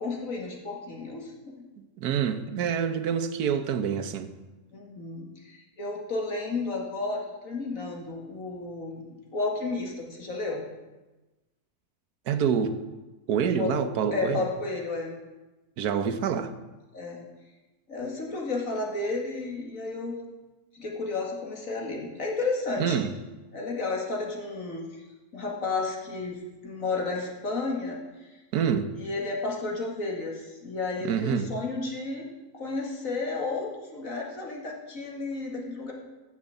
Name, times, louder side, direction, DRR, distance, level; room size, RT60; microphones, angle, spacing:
voice 1, 0.0-1.3 4.7-10.6 13.6-15.2 16.9-17.2 17.9-20.2 20.7-23.0 23.5-25.0 25.3-28.4 28.9-32.3 32.5-35.9, left 3 dB, 60° left, 2.5 m, -32 dB
voice 2, 2.0-4.3 12.3-12.8 13.3-14.5 15.8-16.5 22.8-23.1 28.5-28.9 31.0-31.5, right 7 dB, 90° right, 1.4 m, -26 dB
10.5 x 7.4 x 7.9 m
omnidirectional pair, 1.6 m